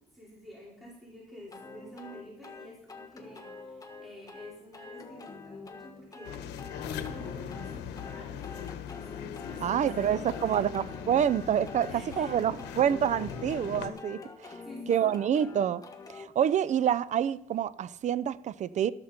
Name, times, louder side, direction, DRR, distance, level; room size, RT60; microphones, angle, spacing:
voice 1, 0.1-6.6 6.8-9.1 9.5-10.8 11.9-12.4 14.6-15.2, equal, ahead, 4.9 m, -49 dB
sound 1, 1.5-16.3, left 4 dB, 20° left, 1.6 m, -46 dB
sound 2, 6.2-13.9, left 7 dB, 80° left, 1.3 m, -40 dB
voice 2, 9.6-11.9 12.2-14.6 14.9-15.8 16.1-18.9, right 9 dB, 45° right, 0.6 m, -27 dB
13.0 x 13.0 x 4.4 m
cardioid pair, 110°, 17 cm